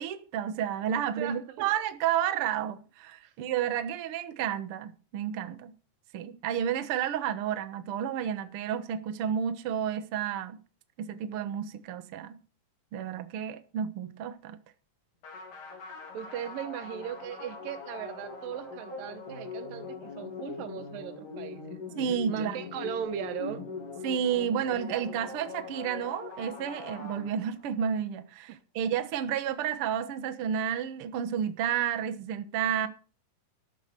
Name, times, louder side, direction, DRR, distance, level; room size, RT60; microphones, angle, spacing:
voice 1, 0.0-5.7 6.1-10.6 11.0-12.4 12.9-14.6 22.0-22.6 24.0-32.9, right 9 dB, 60° right, 1.6 m, -31 dB
voice 2, 1.2-1.7 3.2-3.3 16.1-21.8 22.3-23.7, right 10 dB, 90° right, 2.8 m, -38 dB
sound 1, 15.2-27.8, left 4 dB, 70° left, 5.5 m, -41 dB
13.0 x 7.3 x 6.8 m
omnidirectional pair, 3.9 m